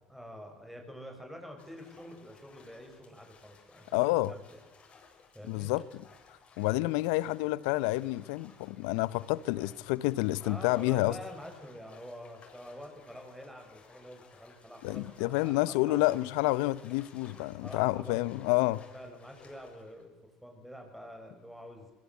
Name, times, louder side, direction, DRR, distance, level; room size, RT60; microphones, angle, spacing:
voice 1, 0.1-4.6 5.3-5.7 9.5-9.7 10.2-16.4 17.6-20.1 20.4-21.9, equal, ahead, 7.8 m, -47 dB
sound 1, 1.6-20.0, left 5 dB, 40° left, 7.7 m, -59 dB
voice 2, 3.9-4.3 5.5-6.0 6.6-11.2 14.8-18.8, left 19 dB, 75° left, 0.9 m, -29 dB
24.0 x 23.5 x 8.4 m
hypercardioid pair, 70°, 3 cm